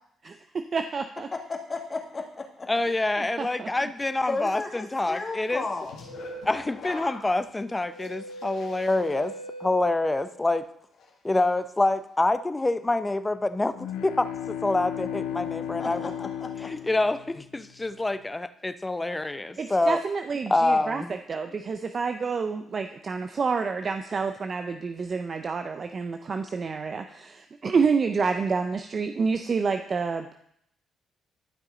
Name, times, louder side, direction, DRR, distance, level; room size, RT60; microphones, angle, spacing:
voice 1, 0.7-1.3 3.2-3.7 19.6-30.3, right 5 dB, 45° right, 7 dB, 0.5 m, -28 dB
voice 2, 1.3-2.7 4.3-6.0 15.8-16.9, left 3 dB, 35° left, 2 dB, 1.9 m, -34 dB
voice 3, 2.7-5.6 6.4-9.3 9.6-10.6 11.2-16.1 16.6-20.0 20.5-21.1, left 2 dB, 20° left, 12 dB, 0.6 m, -26 dB
sound 1, 5.5-10.6 11.0-11.4, equal, 70° left, 1.7 m, -41 dB
sound 2, 13.7-17.7, left 10 dB, 90° left, 0.5 m, -34 dB
11.5 x 6.0 x 3.9 m, 0.73 s
supercardioid pair, 65°, 0 cm